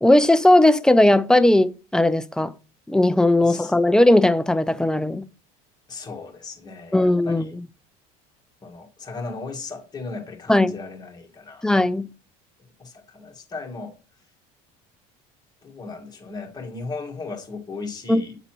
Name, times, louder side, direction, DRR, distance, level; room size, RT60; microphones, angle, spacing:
voice 1, 0.0-2.5 2.9-5.2 6.9-7.5 10.5-10.7 11.6-12.1 18.1-18.2, left 1 dB, 5° left, 0.4 m, -17 dB
voice 2, 3.4-3.7 5.9-7.5 8.6-11.9 12.8-14.0 15.6-18.4, left 4 dB, 20° left, 1.8 m, -36 dB
8.7 x 4.0 x 3.0 m
supercardioid pair, 110°, 18 cm